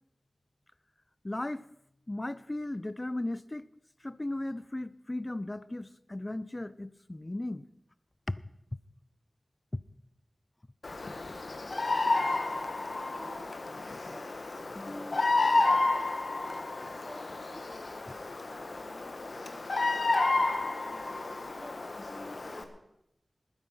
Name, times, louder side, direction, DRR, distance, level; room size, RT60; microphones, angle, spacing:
voice 1, 1.2-1.7 2.1-3.7 4.0-7.7 8.3-8.4 14.7-15.5 22.1-22.4, left 1 dB, 25° left, 0.6 m, -37 dB
Bird vocalization bird call bird song, 10.8-22.6, left 3 dB, 65° left, 1.6 m, -31 dB
voice 2, 12.1-14.3 14.9-16.0 16.8-17.8 18.3-22.8, equal, 10° right, 6.5 m, -52 dB
20.0 x 9.8 x 5.7 m
wide cardioid pair, 75°, 0 cm